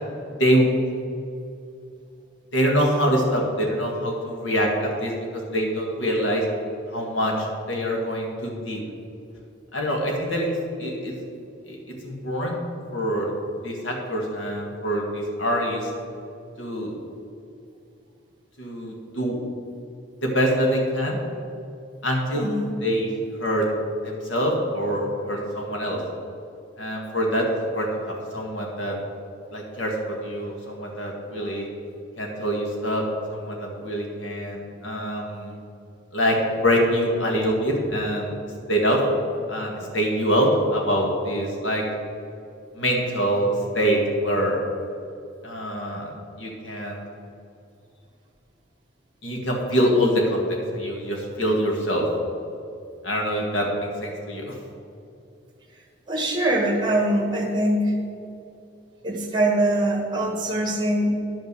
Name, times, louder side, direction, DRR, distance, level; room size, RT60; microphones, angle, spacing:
voice 1, 0.4-0.7 2.5-6.5 6.9-8.8 9.7-10.5 10.8-11.2 11.7-11.8 12.0-12.6 12.9-13.3 13.6-15.9 16.6-17.0 18.6-19.4 20.2-21.2 22.0-22.5 22.8-23.1 23.4-23.7 24.0-26.0 26.8-27.5 27.7-29.0 29.5-31.7 32.2-33.0 33.3-35.6 36.1-36.4 36.6-38.3 38.7-39.0 39.5-41.8 42.7-44.6 45.4-46.1 46.4-47.0 49.2-52.1 53.0-54.5, equal, 60° left, -1 dB, 2.0 m, -24 dB
voice 2, 56.1-57.9 59.0-61.1, right 1 dB, 20° right, 2 dB, 1.5 m, -23 dB
10.0 x 5.6 x 6.9 m, 2.6 s
head